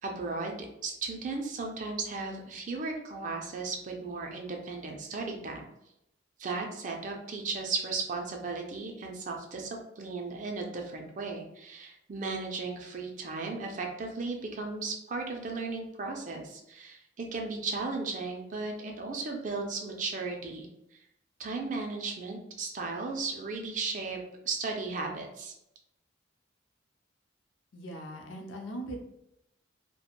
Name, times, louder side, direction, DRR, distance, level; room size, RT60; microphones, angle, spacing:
voice 1, 0.0-5.7 6.4-21.0 21.4-24.2 24.4-25.5, right 3 dB, 40° right, 2 dB, 0.4 m, -36 dB
voice 2, 27.7-29.1, right 1 dB, 75° left, 2 dB, 0.5 m, -40 dB
2.4 x 2.1 x 2.9 m, 0.82 s
head